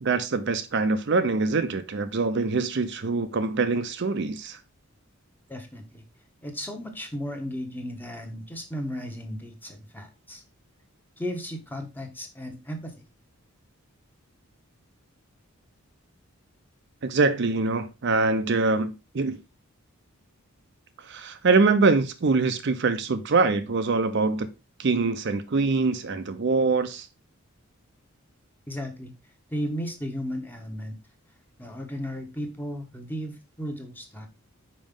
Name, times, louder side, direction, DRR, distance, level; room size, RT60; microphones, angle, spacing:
voice 1, 0.0-4.6 17.0-19.4 21.0-24.5 24.8-27.1, right 3 dB, 50° right, 0.5 m, -24 dB
voice 2, 5.5-6.0 6.4-10.4 11.2-12.9 28.7-29.1 29.5-31.0 31.6-34.3, equal, 10° left, 1.0 m, -35 dB
5.3 x 5.0 x 3.6 m
head